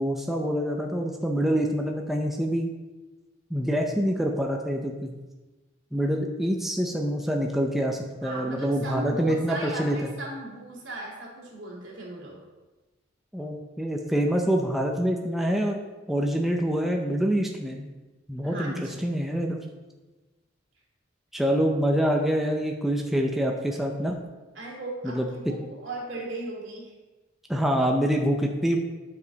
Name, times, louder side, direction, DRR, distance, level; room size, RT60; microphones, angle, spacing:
voice 1, 0.0-2.7 3.5-5.1 5.9-10.0 13.3-15.8 16.1-18.0 18.3-18.7 19.0-19.6 21.3-24.2 25.0-25.3 27.5-28.8, equal, ahead, 1 dB, 0.5 m, -26 dB
voice 2, 8.2-12.4 18.4-19.1 24.5-26.9, right 1 dB, 70° right, -3 dB, 2.7 m, -37 dB
9.6 x 5.3 x 4.0 m, 1.2 s
head